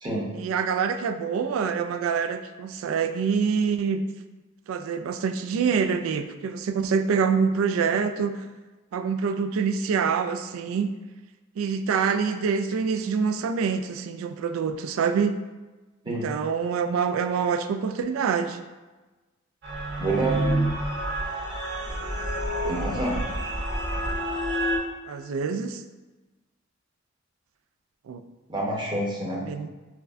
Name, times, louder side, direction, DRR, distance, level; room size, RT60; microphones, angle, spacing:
voice 1, 0.3-4.0 4.7-8.4 8.9-10.9 11.6-15.4 16.1-18.6 25.1-25.8 28.1-28.2 29.5-29.7, right 6 dB, 90° right, 10 dB, 0.3 m, -26 dB
sound 1, 19.6-24.8, right 1 dB, 55° right, 1.0 m, -28 dB
voice 2, 20.0-20.4 22.6-23.2 28.5-29.5, right 2 dB, 25° right, -4 dB, 0.9 m, -27 dB
5.8 x 2.2 x 2.5 m, 1.2 s
head